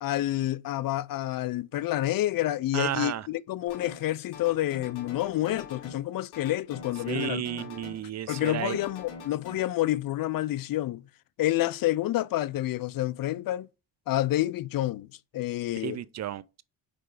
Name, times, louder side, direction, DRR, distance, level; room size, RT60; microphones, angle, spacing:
voice 1, 0.0-7.7 8.3-11.0 11.4-13.7 14.1-15.1 15.3-16.0, left 14 dB, 60° left, 0.5 m, -28 dB
voice 2, 2.7-3.3 7.1-8.8 15.8-16.6, right 11 dB, 45° right, 0.4 m, -32 dB
sound 1, 3.7-4.1 4.3-6.1 6.3-8.1 8.3-9.6, left 5 dB, 90° left, 2.1 m, -44 dB
5.1 x 5.0 x 4.7 m
cardioid pair, 85°, 38 cm